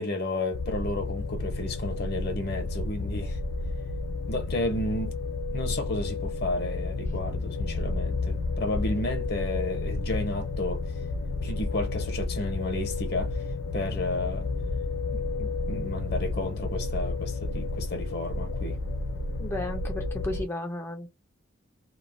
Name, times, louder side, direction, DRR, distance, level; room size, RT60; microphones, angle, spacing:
voice 1, 0.0-3.4 4.3-5.2 5.5-10.8 11.4-13.4 13.7-14.5 15.1-18.8, left 2 dB, 55° left, 0.8 m, -32 dB
sound 1, 0.5-20.5, left 3 dB, 85° left, 0.4 m, -31 dB
voice 2, 19.4-21.1, left 1 dB, 15° left, 0.4 m, -34 dB
3.1 x 2.0 x 2.4 m
head